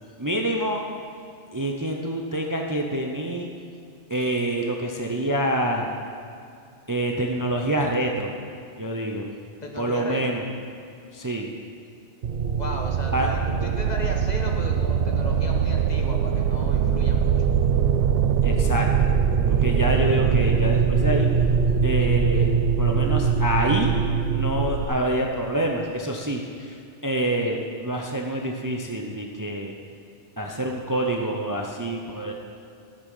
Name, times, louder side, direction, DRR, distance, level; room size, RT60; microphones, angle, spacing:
voice 1, 0.2-0.8 1.5-3.5 4.1-5.9 6.9-8.3 8.8-9.2 9.8-10.4 11.1-11.5 13.1-13.3 18.4-18.9 19.6-21.3 21.8-22.5 22.8-23.9 24.3-26.7 27.0-29.7 30.4-32.3, right 1 dB, 20° right, 1 dB, 0.7 m, -26 dB
voice 2, 9.6-10.4 12.6-17.4, left 1 dB, 40° left, 1 dB, 1.2 m, -35 dB
sound 1, 12.2-24.8, right 6 dB, 60° right, 0.7 m, -22 dB
13.5 x 7.9 x 5.6 m, 2.5 s
omnidirectional pair, 1.2 m